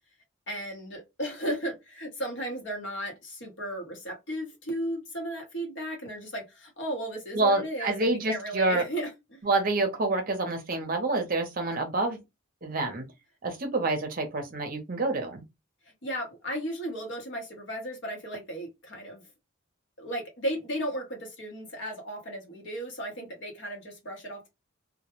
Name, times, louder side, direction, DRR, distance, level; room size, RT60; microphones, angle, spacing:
voice 1, 0.5-9.4 16.0-19.2 20.0-24.5, right 1 dB, 55° left, 0.9 m, -35 dB
voice 2, 7.3-8.9 9.4-12.2 12.6-13.0 13.4-15.4, right 2 dB, 40° right, 0.6 m, -27 dB
2.2 x 2.1 x 2.9 m
head